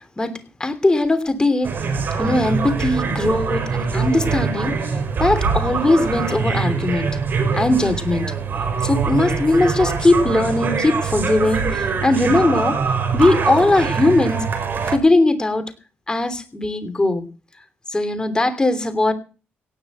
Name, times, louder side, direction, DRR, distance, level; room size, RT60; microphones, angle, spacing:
voice 1, 0.2-1.7 2.2-4.7 5.2-7.1 7.5-8.3 8.8-12.8 13.1-14.5 14.8-15.7 16.1-17.3 17.9-19.1, left 2 dB, 20° left, 9 dB, 3.0 m, -19 dB
sound 1, 1.6-15.0, right 5 dB, 50° right, 4.7 m, -23 dB
18.0 x 6.7 x 8.1 m, 0.36 s
cardioid pair, 85°, 4 cm